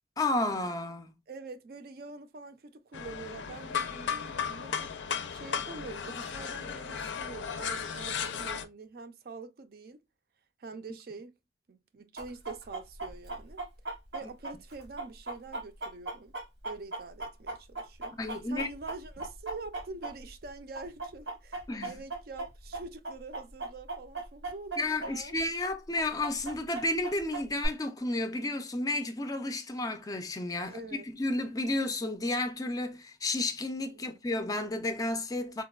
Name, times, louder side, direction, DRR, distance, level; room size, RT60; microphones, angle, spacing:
voice 1, 0.2-1.1 18.2-18.7 21.7-22.0 24.8-35.6, left 2 dB, 20° left, 0.4 m, -32 dB
voice 2, 1.3-4.9 5.3-10.0 10.6-11.3 11.7-13.6 14.1-16.3 16.6-18.2 18.5-25.4 30.6-31.1 34.0-34.2, right 3 dB, 55° right, 0.4 m, -45 dB
sound 1, 2.9-8.6, left 7 dB, 90° left, 0.4 m, -35 dB
Chicken rooster, 12.2-20.5 20.8-25.1 25.4-25.5 26.0-27.7, right 2 dB, 85° right, 1.1 m, -38 dB
3.9 x 2.2 x 2.2 m
head